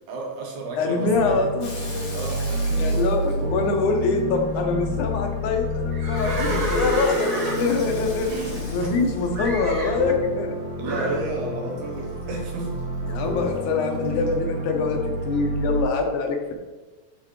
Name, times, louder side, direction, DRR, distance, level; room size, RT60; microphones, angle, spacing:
voice 1, 0.1-1.5 2.1-3.1 6.3-6.8 8.2-8.9 9.5-9.6 10.8-12.7, right 2 dB, 85° right, 0 dB, 2.8 m, -32 dB
voice 2, 0.8-2.2 2.8-10.6 13.1-16.5, left 3 dB, 90° left, 3 dB, 2.4 m, -25 dB
sound 1, 1.1-15.8, left 1 dB, 70° right, 2.7 m, -29 dB
Water tap faucet / Sink (filling or washing), 1.6-4.6 6.1-9.9 11.9-14.4, left 2 dB, 40° left, 1.6 m, -42 dB
Livestock farm animals working animals, 5.9-9.0 9.3-10.0 10.8-11.2, right 1 dB, 50° right, 2.8 m, -29 dB
9.9 x 4.2 x 3.2 m, 1.2 s
omnidirectional pair, 3.4 m